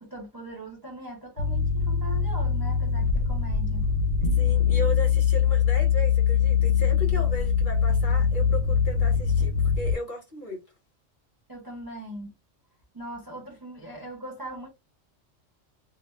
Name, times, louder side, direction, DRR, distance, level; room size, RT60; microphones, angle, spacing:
voice 1, 0.0-3.9 11.5-12.3 12.9-14.7, right 1 dB, 35° right, 0.3 m, -40 dB
sound 1, 1.4-10.0, left 7 dB, 70° left, 0.9 m, -23 dB
voice 2, 4.4-10.6, right 1 dB, 45° left, 1.0 m, -36 dB
2.3 x 2.0 x 3.3 m
omnidirectional pair, 1.3 m